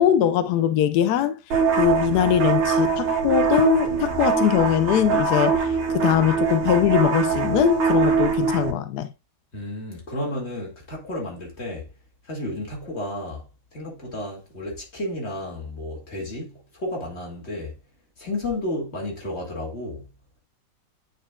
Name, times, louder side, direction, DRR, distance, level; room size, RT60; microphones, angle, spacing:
voice 1, 0.0-1.4 1.8-9.1, left 10 dB, 85° left, 0.8 m, -21 dB
sound 1, 1.5-8.7, right 5 dB, 65° right, 1.8 m, -23 dB
voice 2, 9.5-11.9 12.2-17.8 18.2-20.1, left 1 dB, 30° left, 2.3 m, -32 dB
9.1 x 4.5 x 2.3 m
omnidirectional pair, 2.3 m